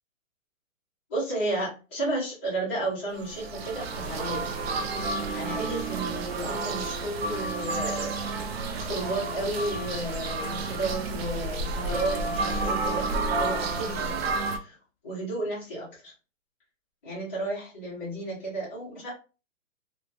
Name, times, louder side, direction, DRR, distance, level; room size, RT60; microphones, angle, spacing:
voice 1, 1.1-4.5 5.3-8.5 8.7-14.2 14.5-14.7 15.0-16.1 17.0-19.1, right 2 dB, 10° left, -9 dB, 0.5 m, -33 dB
sound 1, 3.1-14.6, right 3 dB, 50° right, 0.5 m, -30 dB
3.0 x 2.1 x 2.4 m, 0.33 s
hypercardioid pair, 160°, 40 cm